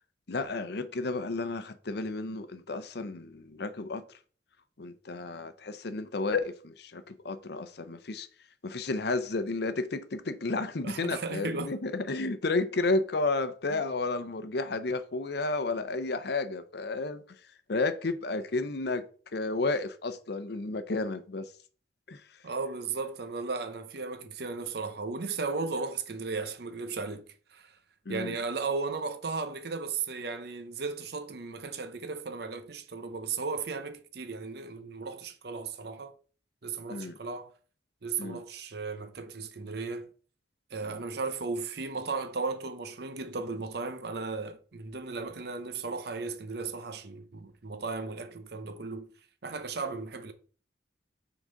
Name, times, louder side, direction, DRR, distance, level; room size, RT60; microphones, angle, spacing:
voice 1, 0.3-4.2 4.8-8.3 8.6-17.4 17.7-21.5 22.1-22.4 28.1-28.4 36.9-37.2 38.2-38.4 40.8-41.0, left 3 dB, 60° left, 0.7 m, -32 dB
voice 2, 10.8-11.7 13.7-13.8 22.4-27.8 28.1-36.1 36.6-37.5 38.0-40.1 40.7-49.1 49.4-50.3, right 4 dB, 60° right, 0.8 m, -35 dB
6.4 x 3.9 x 5.1 m
head